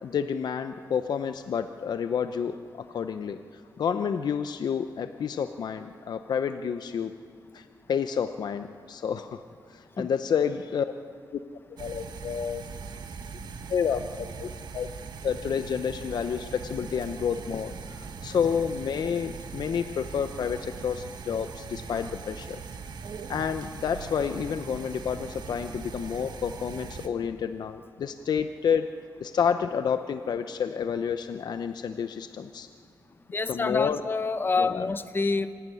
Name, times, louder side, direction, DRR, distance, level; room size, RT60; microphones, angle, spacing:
voice 1, 0.0-2.6 2.9-3.4 3.8-7.1 7.5-9.4 9.7-10.9 11.3-11.4 11.8-12.6 13.7-14.5 14.7-14.9 15.2-22.6 23.3-28.9 29.2-32.7 33.5-34.0 34.6-34.9, left 7 dB, 65° left, 9 dB, 0.7 m, -29 dB
sound 1, 11.8-27.1, right 5 dB, 65° right, 1.2 m, -41 dB
voice 2, 33.3-35.5, left 3 dB, 30° left, 11 dB, 0.9 m, -27 dB
26.0 x 12.0 x 9.8 m, 2.1 s
wide cardioid pair, 130°, 8 cm